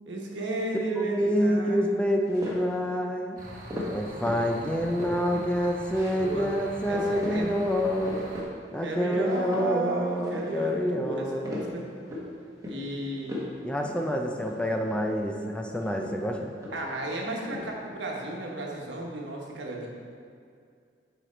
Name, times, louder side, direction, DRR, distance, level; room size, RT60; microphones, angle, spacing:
voice 1, 0.1-1.9 4.4-4.9 6.1-6.5 6.8-7.6 8.8-11.9 12.6-13.4 16.7-19.9, right 2 dB, 85° right, -1 dB, 1.1 m, -34 dB
voice 2, 1.0-3.4 3.9-8.2 8.7-11.5 13.6-16.5, equal, 5° left, 2 dB, 0.4 m, -27 dB
sound 1, 2.2-2.8 3.7-4.5 4.8-5.5 5.9-6.2 6.5-6.6 6.9-7.4 7.8-8.5 8.8-9.7 10.0-10.7 11.2-12.3 12.6-12.9 13.2-13.6 13.8-14.0 14.3-15.1 15.8-17.0 17.2-17.7, left 1 dB, 20° right, 1.2 m, -38 dB
sound 2, 3.4-8.4, right 1 dB, 50° right, 1.1 m, -43 dB
7.4 x 4.9 x 4.4 m, 2.3 s
head